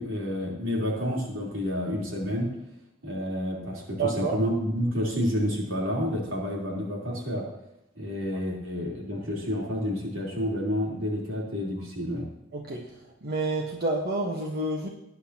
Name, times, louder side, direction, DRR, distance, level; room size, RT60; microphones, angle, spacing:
voice 1, 0.0-2.5 3.0-7.5 8.0-12.3, equal, 80° right, -3 dB, 3.6 m, -29 dB
voice 2, 4.0-4.4 12.5-12.9 13.2-14.9, right 2 dB, 50° right, 0 dB, 1.3 m, -29 dB
19.0 x 9.6 x 2.9 m, 0.89 s
head